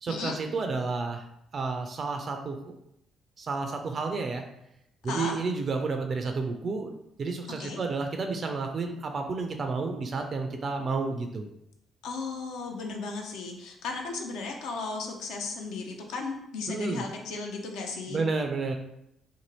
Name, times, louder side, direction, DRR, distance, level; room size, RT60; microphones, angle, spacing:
voice 1, 0.0-1.3 1.5-2.8 3.4-4.4 5.0-11.5 16.7-17.0 18.1-18.7, right 4 dB, 45° right, 5 dB, 0.3 m, -31 dB
voice 2, 5.0-5.4 7.6-7.8 12.0-18.2, left 4 dB, 65° left, 2 dB, 0.5 m, -35 dB
2.6 x 2.5 x 2.9 m, 0.80 s
figure-of-eight pair, 45°, 0 cm